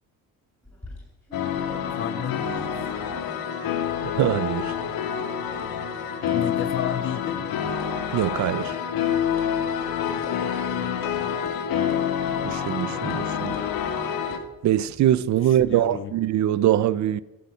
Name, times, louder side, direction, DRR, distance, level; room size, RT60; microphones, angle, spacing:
sound 1, 0.6-3.4 3.7-4.4 4.8-4.9 5.2-5.3 5.6-5.7 6.3-6.4 6.7-6.8 7.1-7.2 7.5-7.9 8.2-8.3 8.6-8.7 9.4-9.5 9.8-9.9 10.2-10.4 11.0-11.2 11.4-11.6 11.9-12.0 12.7-12.8 13.1-13.7 14.2-15.7, left 2 dB, 5° left, 7.8 m, -44 dB
sound 2, 1.3-14.4, left 8 dB, 80° left, 2.0 m, -27 dB
voice 1, 1.9-2.8 6.3-7.5 15.6-16.1, left 10 dB, 35° left, 0.6 m, -32 dB
voice 2, 4.1-4.7 8.1-8.8 12.4-13.5 14.6-17.2, right 12 dB, 55° right, 0.7 m, -23 dB
16.0 x 8.9 x 9.5 m
cardioid pair, 140°, 36 cm